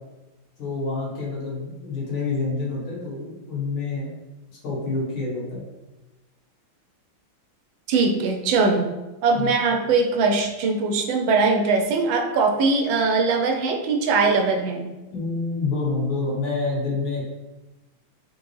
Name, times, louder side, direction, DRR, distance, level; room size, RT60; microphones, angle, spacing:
voice 1, 0.6-4.1 4.6-5.6 9.4-9.6 15.1-17.2, left 3 dB, 85° left, -5 dB, 2.3 m, -27 dB
voice 2, 7.9-8.9 9.2-14.9, right 4 dB, 75° right, 3 dB, 1.3 m, -21 dB
3.9 x 3.8 x 3.1 m, 1.1 s
omnidirectional pair, 2.2 m